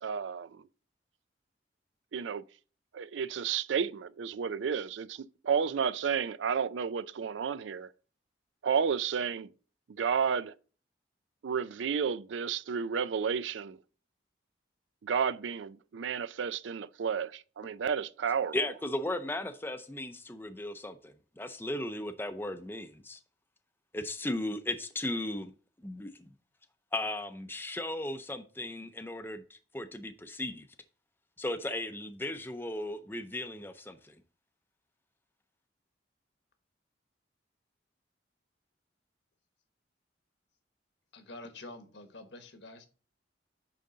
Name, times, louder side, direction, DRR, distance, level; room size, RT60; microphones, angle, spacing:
voice 1, 0.0-0.7 2.1-2.4 2.9-7.9 8.6-9.5 9.9-10.6 11.4-13.8 15.0-18.5, right 6 dB, 80° right, 0.4 m, -32 dB
voice 2, 18.5-23.2 23.9-25.5 25.8-26.3 26.9-30.7 31.4-34.2, left 1 dB, 10° left, 0.5 m, -36 dB
voice 3, 41.1-42.9, left 2 dB, 70° left, 1.3 m, -47 dB
9.1 x 3.8 x 3.8 m
head